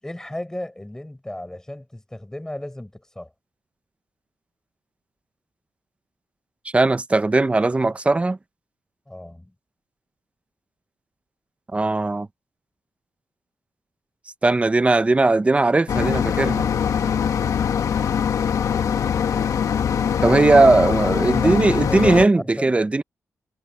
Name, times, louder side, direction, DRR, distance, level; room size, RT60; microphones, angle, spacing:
voice 1, 0.0-3.3 9.1-9.5 21.3-22.7, left 1 dB, 10° left, 6.9 m, -34 dB
voice 2, 6.7-8.4 11.7-12.3 14.4-16.7 20.2-23.0, right 2 dB, 20° right, 0.9 m, -18 dB
sound 1, 15.9-22.3, left 8 dB, 70° left, 1.7 m, -22 dB
cardioid pair, 105°, 6 cm